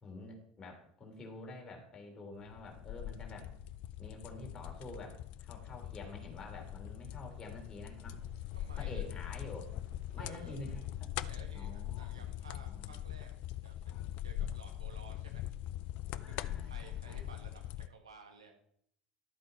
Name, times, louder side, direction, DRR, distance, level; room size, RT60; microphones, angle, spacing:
voice 1, 0.0-3.5 4.0-8.2 8.8-9.7 10.1-11.1 11.5-12.2 12.7-13.0 16.2-17.2, left 2 dB, 25° left, 1 dB, 3.4 m, -48 dB
sound 1, 2.4-17.9, left 13 dB, 50° left, 0.4 m, -42 dB
sound 2, 2.9-17.7, right 5 dB, 45° right, 3.8 m, -63 dB
voice 2, 8.5-9.2 10.1-10.6 11.2-15.4 16.1-18.5, right 4 dB, 80° right, 2 dB, 1.7 m, -55 dB
12.0 x 7.8 x 4.2 m, 0.68 s
figure-of-eight pair, 70°, 3 cm